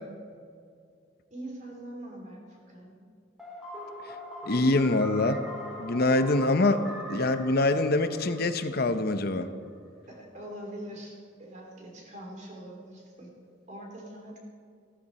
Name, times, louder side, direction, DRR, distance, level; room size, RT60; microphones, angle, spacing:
voice 1, 1.3-3.0 10.1-13.3 13.7-14.4, right 1 dB, 40° right, -1 dB, 3.5 m, -43 dB
sound 1, 3.4-9.2, left 1 dB, ahead, 2.4 m, -42 dB
voice 2, 4.4-5.4 5.8-6.8 7.1-9.5, left 2 dB, 55° left, 10 dB, 0.8 m, -24 dB
15.0 x 13.0 x 4.3 m, 2.2 s
head